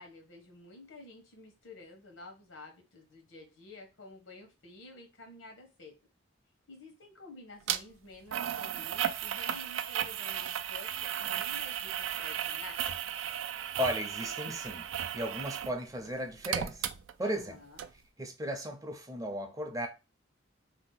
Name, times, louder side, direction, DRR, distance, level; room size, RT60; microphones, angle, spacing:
voice 1, 0.0-5.9 6.7-10.9 11.2-12.8 17.2-17.8, left 2 dB, 90° left, 1.1 m, -50 dB
sound 1, 7.7-7.8 8.3-15.8 16.0-17.5 17.8-17.9, right 10 dB, 85° right, 0.3 m, -35 dB
voice 2, 13.8-16.9 17.2-17.6 18.2-19.9, equal, 15° right, 0.5 m, -35 dB
2.7 x 2.1 x 3.9 m
head